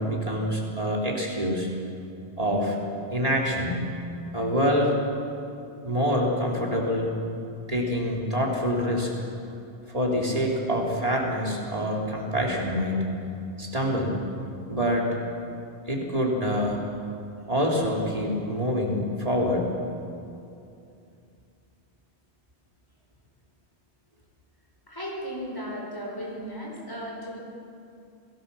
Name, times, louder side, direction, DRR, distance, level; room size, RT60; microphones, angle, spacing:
voice 1, 0.0-1.7 2.4-2.8 3.1-3.8 4.3-5.0 5.8-7.1 7.7-9.1 9.9-13.0 13.6-14.2 14.7-15.1 15.9-17.0 17.5-19.6, equal, 35° right, -2 dB, 3.7 m, -26 dB
voice 2, 24.9-27.4, equal, 20° left, -2 dB, 5.7 m, -35 dB
28.5 x 18.5 x 7.1 m, 2.6 s
omnidirectional pair, 1.1 m